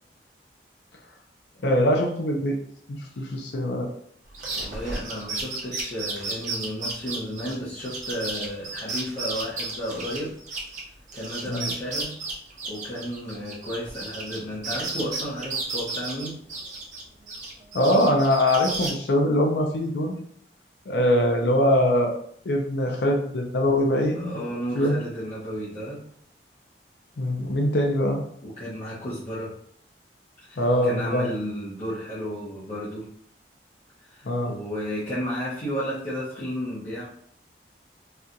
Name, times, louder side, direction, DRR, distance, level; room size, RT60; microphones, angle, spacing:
voice 1, 1.6-2.6 3.2-3.9 11.5-11.7 17.7-20.1 20.9-22.1 22.5-24.4 24.8-25.0 27.2-28.2 30.6-31.3 34.2-34.5, left 1 dB, 75° left, 1 dB, 0.5 m, -22 dB
sound 1, 4.3-10.8 11.1-14.4 14.6-17.0 17.3-18.9, right 3 dB, 45° right, 0.7 m, -33 dB
voice 2, 4.5-10.4 11.1-12.2 12.7-16.4 24.1-26.0 28.4-29.5 30.5-33.1 34.0-37.1, equal, 40° left, -10 dB, 0.8 m, -33 dB
4.2 x 2.3 x 2.6 m, 0.64 s
head